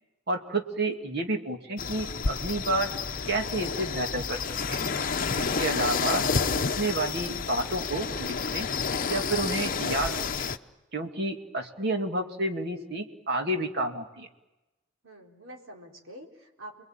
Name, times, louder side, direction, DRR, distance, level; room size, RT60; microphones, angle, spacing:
voice 1, 0.3-2.9 3.3-4.4 4.7-4.8 5.4-6.3 6.5-8.7 9.1-10.2 10.9-14.3, right 2 dB, 55° right, 4 dB, 2.2 m, -30 dB
sound 1, 1.8-10.6, left 5 dB, 45° left, 0.8 m, -30 dB
voice 2, 5.3-5.7 15.0-16.8, right 1 dB, 80° right, 0 dB, 4.3 m, -46 dB
29.5 x 21.5 x 8.9 m, 1.0 s
head